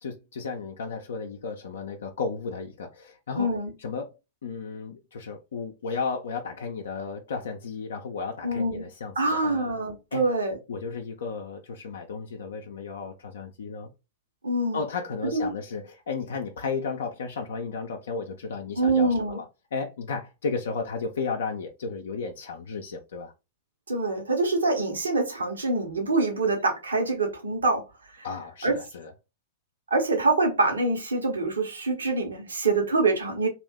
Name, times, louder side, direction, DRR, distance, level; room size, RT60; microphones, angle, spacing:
voice 1, 0.0-3.5 3.8-9.8 10.1-10.2 10.7-13.9 14.7-23.3 28.2-29.1, left 4 dB, 65° left, 0.5 m, -34 dB
voice 2, 3.4-3.7 8.4-8.8 9.2-10.6 14.4-14.8 15.3-15.5 18.8-19.4 23.9-27.8 28.2-28.3 28.6-28.7 29.9-33.5, right 2 dB, 70° right, 1.0 m, -25 dB
2.6 x 2.4 x 3.5 m
figure-of-eight pair, 100°, 0 cm